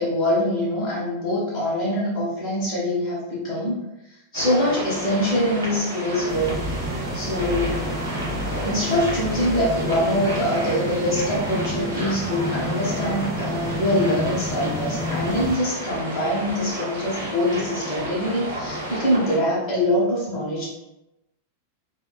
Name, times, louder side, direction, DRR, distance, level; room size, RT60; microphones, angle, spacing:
voice 1, 0.0-3.8 4.3-6.7 7.1-7.7 8.6-20.7, left 1 dB, 25° left, -9 dB, 1.0 m, -24 dB
sound 1, 4.3-19.4, right 1 dB, 65° right, 0.7 m, -32 dB
sound 2, 6.3-15.6, equal, 25° right, 0.4 m, -30 dB
3.0 x 2.2 x 2.2 m, 0.92 s
figure-of-eight pair, 90°, 0 cm